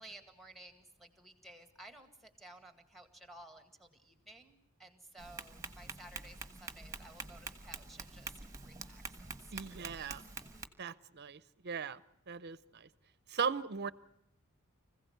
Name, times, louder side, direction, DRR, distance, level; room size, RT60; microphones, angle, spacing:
voice 1, 0.0-8.3 8.6-10.1, right 1 dB, ahead, 7 dB, 1.9 m, -55 dB
Tap, 5.2-10.7, right 4 dB, 15° right, 1.3 m, -46 dB
voice 2, 9.5-10.2 10.8-12.0 12.3-12.9 13.3-13.9, right 6 dB, 50° right, 17 dB, 0.7 m, -38 dB
25.0 x 16.0 x 8.0 m, 0.83 s
head